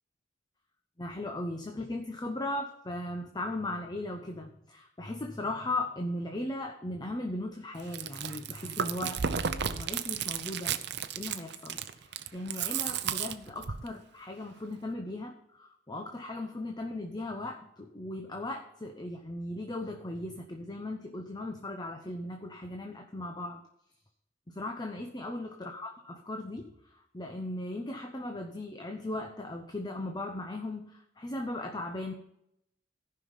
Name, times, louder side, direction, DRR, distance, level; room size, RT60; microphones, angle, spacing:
voice 1, 1.0-9.2 9.6-10.8 11.2-23.6 24.5-32.1, left 1 dB, 25° left, 4 dB, 0.8 m, -37 dB
Chewing mastication, 7.8-13.9, right 7 dB, 65° right, 0.7 m, -33 dB
14.5 x 5.7 x 5.6 m, 0.78 s
head